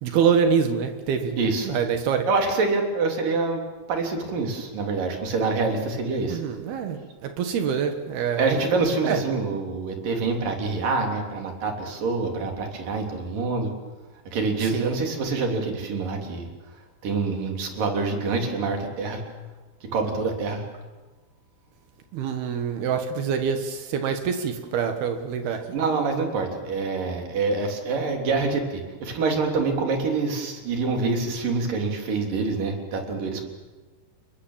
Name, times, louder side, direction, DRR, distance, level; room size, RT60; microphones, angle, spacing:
voice 1, 0.0-1.4 1.7-2.3 6.3-7.0 7.2-8.5 9.0-9.2 14.7-14.9 22.1-25.6, right 7 dB, 80° right, 6 dB, 3.5 m, -25 dB
voice 2, 1.4-1.7 2.3-3.6 3.9-6.4 8.4-13.7 14.3-16.5 17.0-19.2 19.9-20.6 25.7-33.5, right 4 dB, 60° right, 3 dB, 4.9 m, -26 dB
29.5 x 21.0 x 7.4 m, 1.3 s
omnidirectional pair, 4.5 m